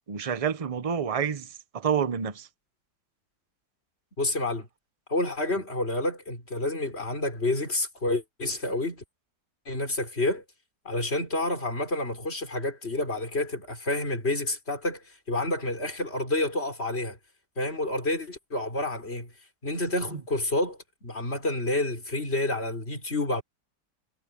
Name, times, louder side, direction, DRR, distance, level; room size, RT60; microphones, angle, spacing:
voice 1, 0.1-1.5 1.7-2.5, right 7 dB, 30° right, 0.6 m, -28 dB
voice 2, 4.2-4.7 5.1-9.0 9.7-10.4 10.9-15.0 15.3-17.2 17.6-19.3 19.6-23.4, left 2 dB, 35° left, 5.4 m, -29 dB
omnidirectional pair, 2.0 m